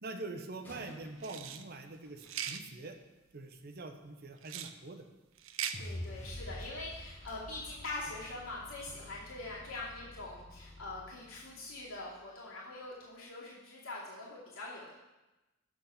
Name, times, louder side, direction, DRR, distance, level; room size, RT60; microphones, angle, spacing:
voice 1, 0.0-3.0 3.3-5.0, right 2 dB, 50° right, 6 dB, 0.8 m, -44 dB
sound 1, 0.5-3.1 6.9-10.7 11.1-11.3 11.8-12.0, left 1 dB, 10° left, 1.3 m, -60 dB
sound 2, 1.2-1.6 2.2-2.6 4.4-4.7 5.4-5.8, right 9 dB, 70° right, 0.5 m, -39 dB
sound 3, 5.7-11.9, left 1 dB, 30° left, 0.9 m, -48 dB
voice 2, 5.8-14.9, left 2 dB, 80° left, -6 dB, 2.5 m, -43 dB
8.3 x 6.3 x 5.7 m, 1.1 s
head